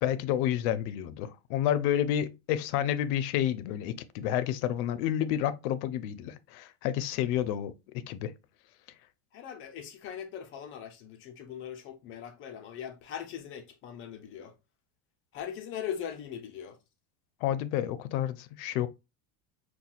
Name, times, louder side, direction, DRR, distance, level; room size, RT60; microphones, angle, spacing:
voice 1, 0.0-8.3 17.4-18.9, left 11 dB, 75° left, 0.6 m, -30 dB
voice 2, 9.3-14.5 15.3-16.8, left 9 dB, 30° left, 0.4 m, -40 dB
5.6 x 2.3 x 2.3 m
cardioid pair, 170°, 45 cm